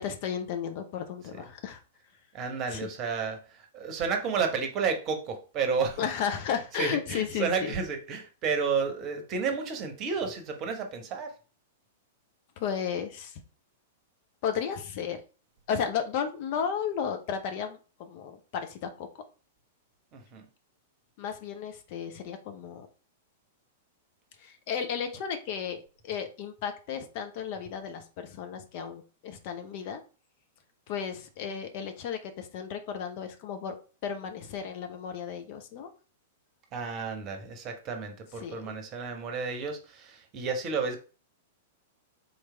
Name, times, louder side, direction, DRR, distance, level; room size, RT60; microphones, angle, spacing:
voice 1, 0.0-1.8 2.7-2.9 6.0-7.7 12.6-13.4 14.4-15.2 15.7-19.1 21.2-22.9 24.4-30.0 30.9-33.8 34.0-35.9 38.4-38.8, left 7 dB, 45° left, 6 dB, 0.7 m, -34 dB
voice 2, 2.3-6.0 6.8-11.3 20.1-20.4 36.7-41.0, right 5 dB, 30° right, 5 dB, 0.9 m, -31 dB
3.9 x 3.3 x 3.3 m, 0.34 s
figure-of-eight pair, 100°, 0 cm